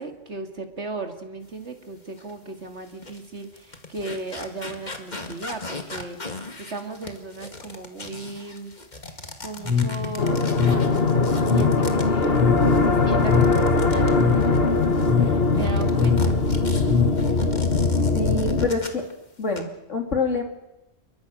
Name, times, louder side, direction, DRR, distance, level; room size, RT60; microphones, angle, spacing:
voice 1, 0.0-8.7 9.4-16.4, right 2 dB, 65° right, 5 dB, 2.8 m, -36 dB
sound 1, 2.2-2.3 2.9-15.1 15.5-19.1 19.4-19.6, left 2 dB, 35° left, 2.2 m, -38 dB
sound 2, 9.6-17.5, left 6 dB, 15° right, 3.5 m, -25 dB
sound 3, 10.2-18.7, left 3 dB, 55° left, 1.9 m, -21 dB
voice 2, 18.1-19.0 19.4-20.4, left 4 dB, 90° left, 3 dB, 3.6 m, -26 dB
29.0 x 22.5 x 6.4 m, 0.95 s
omnidirectional pair, 1.2 m